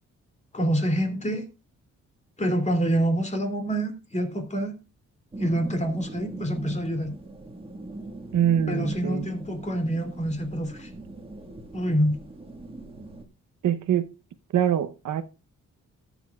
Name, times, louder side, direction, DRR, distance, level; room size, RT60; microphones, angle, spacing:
voice 1, 0.5-1.4 2.4-4.8 5.4-7.1 8.7-10.9 11.7-12.2, right 1 dB, 25° left, 2.7 m, -26 dB
sound 1, 5.3-13.2, right 2 dB, 20° right, 1.7 m, -40 dB
voice 2, 8.3-9.3 13.6-14.1 14.5-15.2, right 10 dB, 80° right, 0.9 m, -24 dB
19.0 x 7.1 x 2.3 m
wide cardioid pair, 130°, 29 cm